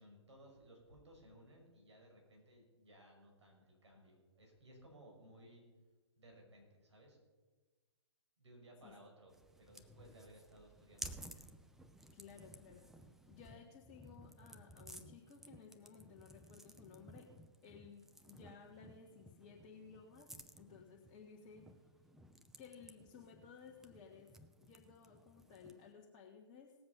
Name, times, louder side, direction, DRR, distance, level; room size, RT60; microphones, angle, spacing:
voice 1, 0.0-5.6 6.2-7.2 8.4-9.3 9.6-11.5, right 1 dB, 65° right, 1 dB, 5.6 m, -60 dB
sound 1, 9.3-25.9, right 1 dB, ahead, 0.5 m, -56 dB
voice 2, 12.1-17.3 17.6-21.7 22.6-26.7, left 6 dB, 20° left, -2 dB, 1.4 m, -58 dB
19.0 x 7.6 x 5.6 m, 1.3 s
figure-of-eight pair, 125°, 16 cm